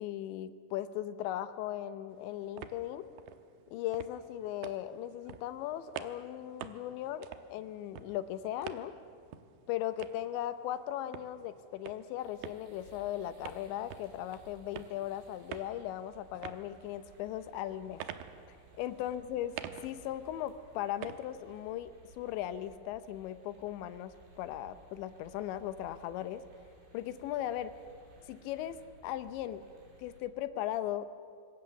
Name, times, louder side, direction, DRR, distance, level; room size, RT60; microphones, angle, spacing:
voice 1, 0.0-3.1 3.7-8.9 9.7-18.0 18.8-19.5 19.8-21.9 22.2-26.4 26.9-27.7 28.3-28.8 29.0-29.6 30.0-31.1, left 12 dB, 75° left, 12 dB, 2.9 m, -38 dB
sound 1, 2.1-21.8, right 10 dB, 90° right, 2.2 m, -49 dB
sound 2, 12.2-30.2, right 1 dB, 60° right, 6.8 m, -60 dB
26.0 x 23.0 x 7.0 m, 2.1 s
omnidirectional pair, 5.9 m